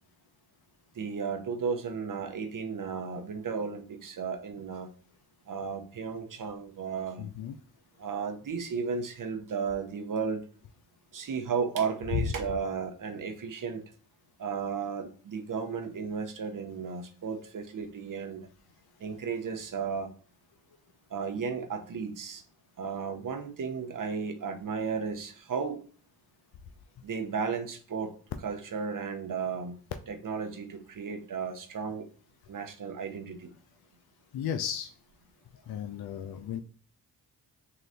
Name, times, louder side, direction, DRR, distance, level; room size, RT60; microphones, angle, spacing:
voice 1, 0.9-4.9 5.5-7.3 8.0-10.4 11.1-13.8 14.4-18.5 19.0-20.1 21.1-22.4 22.8-25.8 27.0-28.1 28.4-29.8 30.1-32.1 32.5-33.5, right 5 dB, 50° right, 6 dB, 0.9 m, -34 dB
voice 2, 7.2-7.6 12.1-12.3 34.3-34.9 35.5-36.6, left 8 dB, 60° left, 7 dB, 0.5 m, -33 dB
3.9 x 2.5 x 3.3 m, 0.41 s
supercardioid pair, 45°, 42 cm